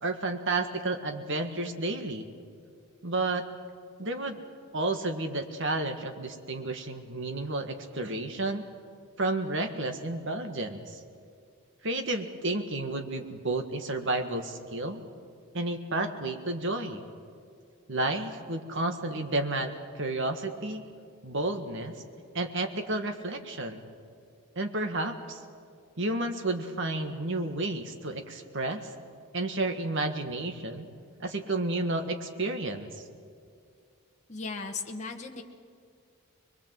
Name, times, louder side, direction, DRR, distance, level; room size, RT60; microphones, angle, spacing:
voice 1, 0.0-2.3 3.0-3.5 4.0-4.4 4.7-8.6 9.2-11.0 11.8-15.0 15.5-17.1 17.9-20.8 21.2-22.0 22.3-23.9 24.6-25.4 26.0-28.9 29.3-30.9 31.2-33.1, right 2 dB, 55° right, 6 dB, 1.7 m, -31 dB
voice 2, 34.3-35.4, left 4 dB, 30° left, 2 dB, 1.2 m, -36 dB
22.5 x 22.5 x 7.7 m, 2.3 s
head